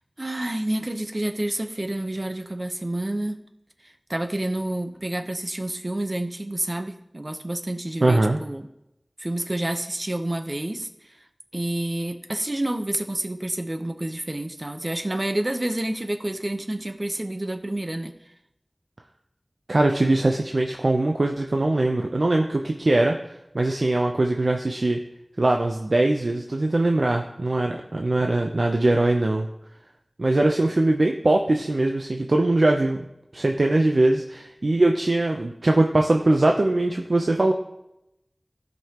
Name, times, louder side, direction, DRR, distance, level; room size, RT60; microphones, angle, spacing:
voice 1, 0.2-3.4 4.1-8.7 9.2-10.9 11.5-18.1, right 1 dB, 45° right, 7 dB, 0.9 m, -29 dB
voice 2, 8.0-8.4 19.7-23.1 23.5-25.0 25.4-29.5 30.2-33.0 33.3-37.5, right 2 dB, 75° right, 2 dB, 0.6 m, -21 dB
15.5 x 5.4 x 2.9 m, 0.85 s
wide cardioid pair, 45°, 0 cm